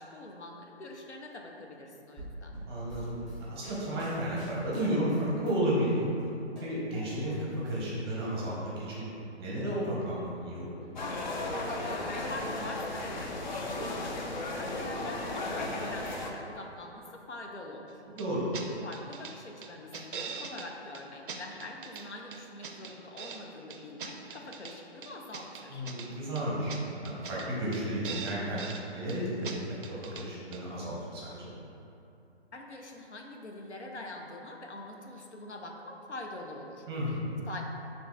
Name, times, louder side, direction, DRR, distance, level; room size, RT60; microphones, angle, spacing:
voice 1, 0.0-2.6 12.0-18.0 18.8-25.9 32.5-36.9 37.5-37.6, left 2 dB, 85° left, 1 dB, 0.6 m, -44 dB
sound 1, 2.2-5.5 5.8-7.4 7.7-8.5, right 1 dB, ahead, 1.2 m, -46 dB
voice 2, 2.7-3.1 3.4-6.1 6.6-9.0 9.4-10.8 18.0-18.5 25.7-26.7 27.0-28.6 28.9-31.5 36.9-37.3, right 1 dB, 25° right, -6 dB, 0.7 m, -32 dB
sound 2, 11.0-16.3, left 2 dB, 45° left, 0.5 m, -35 dB
sound 3, 18.2-18.3 18.5-18.7 18.9-19.3 19.6-20.7 20.9-21.0 21.3-22.0 22.3-23.4 23.7-24.7 25.0-26.1 26.3-26.4 26.7-26.8 27.0-27.5 27.7-27.8 28.0-28.8 29.1-29.2 29.4-29.6 29.8-30.2 30.5-30.6, right 5 dB, 50° right, 0.4 m, -41 dB
7.0 x 2.9 x 2.2 m, 2.8 s
figure-of-eight pair, 135°, 33 cm